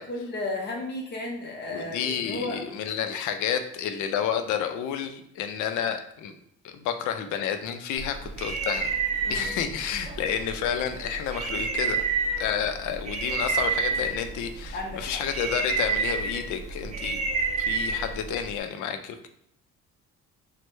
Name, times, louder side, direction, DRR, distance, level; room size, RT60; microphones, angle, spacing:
voice 1, 0.0-2.6 9.3-9.5 14.7-15.2, left 2 dB, 35° left, 1 dB, 0.7 m, -34 dB
voice 2, 1.7-6.4 6.6-8.9 9.3-12.0 12.4-17.2 17.6-19.3, left 8 dB, 75° left, 8 dB, 0.5 m, -30 dB
sound 1, 8.0-18.6, right 4 dB, 25° right, 0.4 m, -30 dB
3.1 x 2.1 x 3.1 m, 0.72 s
cardioid pair, 120°, 30 cm